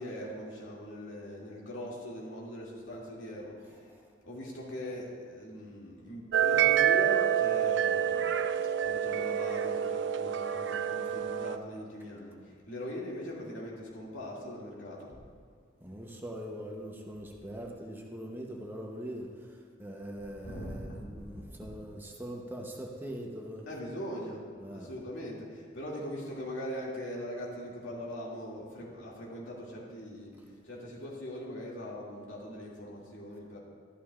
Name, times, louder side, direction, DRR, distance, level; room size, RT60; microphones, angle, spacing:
voice 1, 0.0-3.9 4.2-8.4 8.8-15.2 20.2-21.0 21.6-21.7 23.7-24.4 24.7-30.4 30.6-33.6, equal, 85° left, -5 dB, 2.4 m, -41 dB
sound 1, 6.3-11.6, right 9 dB, 65° right, 0.4 m, -27 dB
voice 2, 15.8-23.7 24.6-24.9, equal, 10° right, 0 dB, 0.9 m, -42 dB
13.0 x 12.0 x 2.5 m, 2.1 s
head